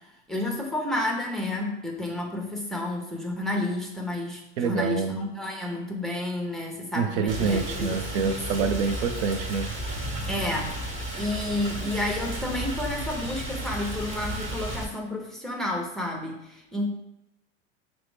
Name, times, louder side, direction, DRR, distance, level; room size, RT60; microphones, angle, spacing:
voice 1, 0.3-8.7 10.3-10.8 11.2-16.9, left 1 dB, ahead, 0 dB, 0.6 m, -31 dB
voice 2, 4.6-5.2 6.9-9.7, right 5 dB, 75° right, 8 dB, 0.5 m, -27 dB
Rain, 7.3-14.8, right 1 dB, 35° right, 1.4 m, -33 dB
5.7 x 2.1 x 3.3 m, 0.89 s
hypercardioid pair, 110°, 35 cm